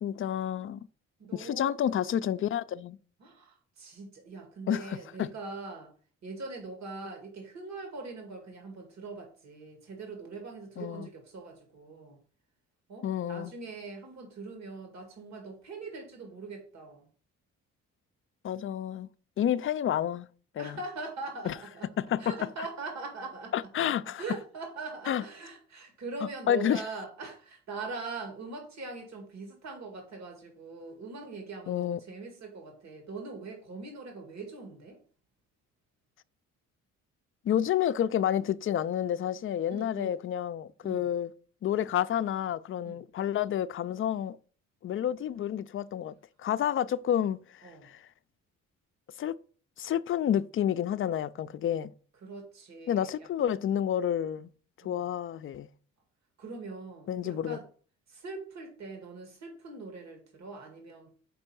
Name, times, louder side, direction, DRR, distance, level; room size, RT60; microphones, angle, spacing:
voice 1, 0.0-0.8 1.3-3.0 4.7-5.3 10.8-11.1 13.0-13.5 18.4-19.1 19.4-20.3 20.5-20.8 21.5-21.6 22.0-22.3 23.5-24.2 25.1-25.2 26.5-26.8 31.7-32.0 37.4-41.3 41.6-44.4 44.8-46.1 46.4-48.0 49.2-49.3 49.8-51.9 52.9-54.5 54.8-55.7 57.1-57.6, left 10 dB, 45° left, 0.4 m, -29 dB
voice 2, 1.2-1.7 3.2-5.9 6.2-12.2 12.9-17.1 20.6-21.9 22.2-23.5 24.0-35.0 39.7-40.1 40.8-41.1 42.8-43.0 47.6-47.9 52.2-53.3 54.8-55.1 56.4-57.7 58.1-61.2, right 3 dB, 60° right, 2.1 m, -42 dB
5.4 x 4.4 x 5.9 m
cardioid pair, 90°, 30 cm